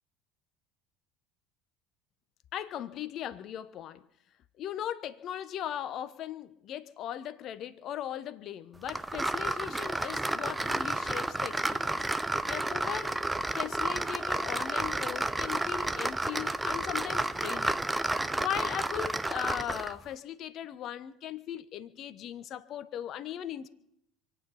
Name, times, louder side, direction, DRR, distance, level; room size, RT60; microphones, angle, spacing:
voice 1, 2.5-4.0 4.6-12.0 12.5-13.2 13.5-17.8 18.4-23.7, left 10 dB, 45° left, 1.1 m, -38 dB
sound 1, 8.9-20.0, right 2 dB, 10° right, 0.8 m, -31 dB
27.0 x 9.2 x 5.7 m
figure-of-eight pair, 65°, 0 cm